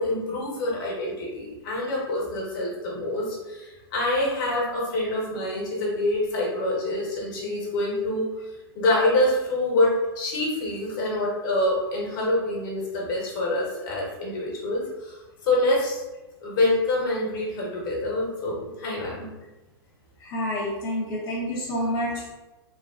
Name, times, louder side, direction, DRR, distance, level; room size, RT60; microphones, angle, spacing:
voice 1, 0.0-8.3 8.7-15.2 15.4-16.0 16.4-19.3, left 1 dB, 55° left, -3 dB, 1.2 m, -26 dB
voice 2, 20.2-22.3, equal, 35° left, -8 dB, 0.8 m, -28 dB
3.2 x 2.3 x 2.4 m, 1.1 s
hypercardioid pair, 120°, 13 cm